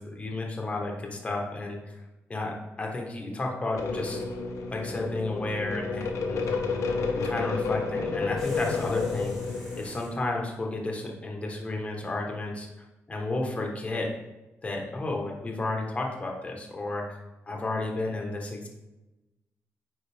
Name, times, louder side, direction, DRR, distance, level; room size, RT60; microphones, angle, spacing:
voice 1, 0.0-2.0 2.3-4.2 4.7-6.4 7.2-12.7 13.1-14.1 14.6-17.2 17.5-18.7, left 2 dB, 25° left, 0 dB, 1.3 m, -32 dB
sound 1, 3.8-9.8, left 4 dB, 80° left, 0.9 m, -30 dB
sound 2, 8.4-10.2, equal, 5° right, 2.2 m, -48 dB
9.3 x 4.0 x 3.5 m, 1.0 s
cardioid pair, 120°, 5 cm